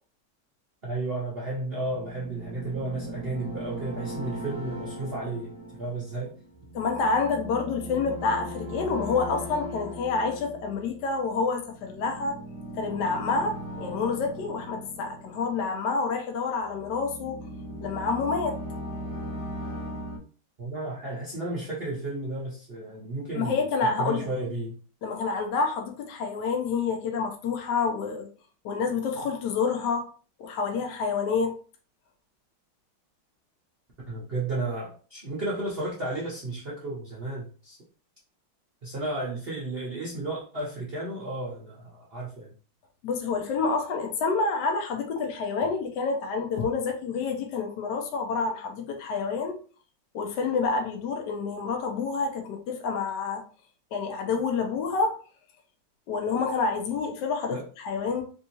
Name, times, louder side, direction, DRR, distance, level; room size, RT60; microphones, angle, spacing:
voice 1, 0.8-5.5 5.8-6.3 20.6-23.6 23.9-24.8 34.1-37.8 38.8-42.5 57.5-57.7, right 2 dB, 65° right, 0.5 m, -33 dB
sound 1, 1.8-16.1 16.6-20.2, equal, 15° left, 1.1 m, -39 dB
voice 2, 6.7-12.4 12.8-17.4 17.8-18.6 23.3-24.3 25.0-28.3 28.6-30.1 30.4-31.6 43.0-49.6 50.1-53.4 53.9-55.2 56.1-58.2, left 4 dB, 70° left, 1.1 m, -28 dB
3.5 x 2.7 x 2.9 m
omnidirectional pair, 2.2 m